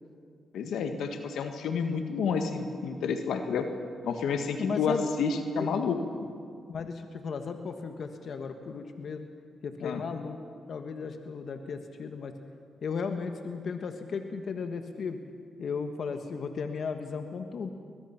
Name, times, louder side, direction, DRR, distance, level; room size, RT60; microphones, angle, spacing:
voice 1, 0.5-3.7 4.0-6.0 9.8-10.0, left 5 dB, 80° left, 6 dB, 1.6 m, -30 dB
voice 2, 4.6-5.1 5.6-5.7 6.7-9.3 9.6-10.4 10.7-12.3 12.8-15.2 15.6-17.7, left 5 dB, 65° left, 6 dB, 1.5 m, -35 dB
22.5 x 20.5 x 5.9 m, 2.2 s
supercardioid pair, 60°, 0 cm